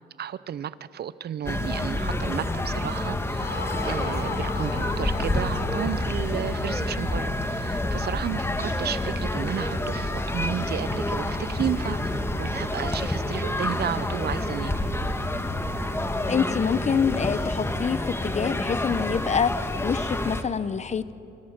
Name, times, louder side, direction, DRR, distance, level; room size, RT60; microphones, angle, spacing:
voice 1, 0.2-14.8, right 9 dB, 55° right, 17 dB, 0.7 m, -33 dB
sound 1, 1.4-20.4, left 1 dB, 10° left, 1.4 m, -28 dB
sound 2, 3.4-7.4, left 3 dB, 60° left, 4.6 m, -38 dB
voice 2, 16.3-21.1, left 6 dB, 35° left, 16 dB, 0.8 m, -26 dB
26.0 x 16.0 x 7.4 m, 2.8 s
cardioid pair, 90°, 20 cm